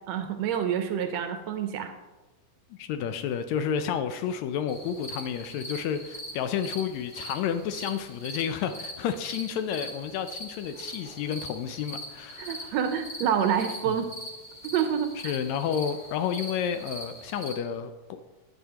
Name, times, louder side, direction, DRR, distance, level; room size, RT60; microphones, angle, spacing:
voice 1, 0.1-1.9 12.4-14.1 14.6-15.3, right 8 dB, 75° right, 6 dB, 1.7 m, -27 dB
voice 2, 2.7-12.7 13.9-14.0 15.2-17.9, left 8 dB, 80° left, 9 dB, 1.7 m, -31 dB
sound 1, 4.7-17.5, equal, 45° left, 0.5 m, -42 dB
11.0 x 7.9 x 2.9 m, 1.1 s
omnidirectional pair, 3.4 m